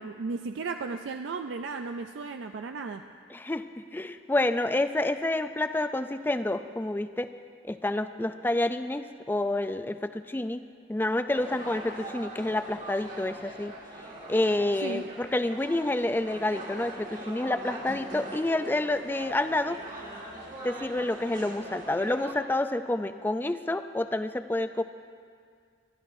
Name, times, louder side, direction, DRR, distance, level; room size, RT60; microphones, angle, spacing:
voice 1, 0.0-3.0 14.8-15.0, right 4 dB, 70° right, 6 dB, 0.4 m, -35 dB
voice 2, 3.3-3.6 3.9-7.3 7.7-10.6 10.9-13.7 14.3-19.8 20.6-24.8, left 1 dB, 10° left, 10 dB, 0.3 m, -28 dB
sound 1, 11.3-22.3, right 1 dB, 45° right, 1.7 m, -42 dB
22.0 x 13.0 x 2.6 m, 2.2 s
head